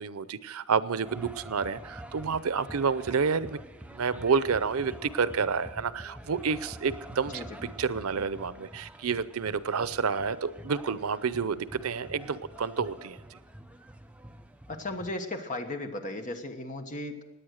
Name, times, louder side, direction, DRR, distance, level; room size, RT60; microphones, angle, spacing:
voice 1, 0.0-3.6 3.9-7.4 7.8-13.4, right 5 dB, 90° right, 16 dB, 0.6 m, -29 dB
sound 1, 1.0-15.2, right 1 dB, 5° right, 0.6 m, -46 dB
voice 2, 7.3-7.7 14.7-17.2, left 2 dB, 35° left, 5 dB, 1.3 m, -36 dB
17.5 x 9.8 x 6.5 m, 1.1 s
head